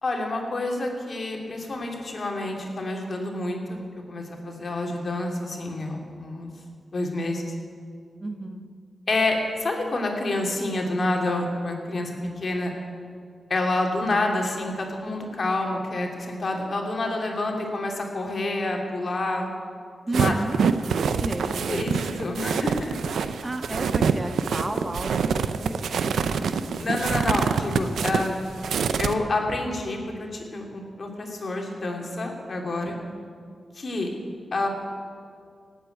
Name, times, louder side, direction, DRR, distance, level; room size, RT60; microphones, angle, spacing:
voice 1, 0.0-3.8 4.1-6.5 6.9-7.5 9.1-12.7 13.5-19.5 20.1-20.5 21.7-23.4 26.8-28.4 29.0-33.0 33.7-34.1 34.5-34.7, left 2 dB, 55° left, 1 dB, 2.9 m, -28 dB
voice 2, 8.2-8.7 20.1-20.6 21.2-21.9 23.4-26.9 32.6-33.6, right 2 dB, 30° right, 6 dB, 1.3 m, -34 dB
sound 1, 20.1-29.1, right 6 dB, 85° right, 0.6 m, -25 dB
17.0 x 8.3 x 9.2 m, 2.3 s
cardioid pair, 55°, 0 cm